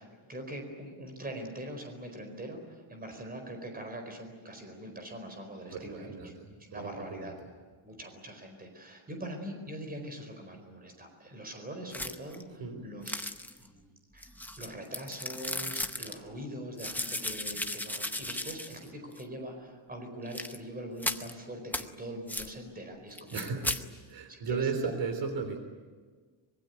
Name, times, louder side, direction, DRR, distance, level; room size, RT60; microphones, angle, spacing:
voice 1, 0.0-6.3 6.7-7.3 7.8-13.2 13.6-14.3 14.6-23.7 24.3-25.2, right 1 dB, 20° right, 5 dB, 4.6 m, -43 dB
voice 2, 5.7-7.3 12.6-12.9 23.3-23.7 24.1-25.6, right 5 dB, 60° right, 7 dB, 3.4 m, -35 dB
sound 1, 11.9-12.4 13.1-13.7 14.2-16.2 16.8-18.9 19.2-19.3 20.3-20.6 21.0-21.3 21.7-21.9 22.3-22.5 23.2-23.8, left 1 dB, 5° left, 0.7 m, -36 dB
25.0 x 22.5 x 9.4 m, 1.5 s
cardioid pair, 180°, 47 cm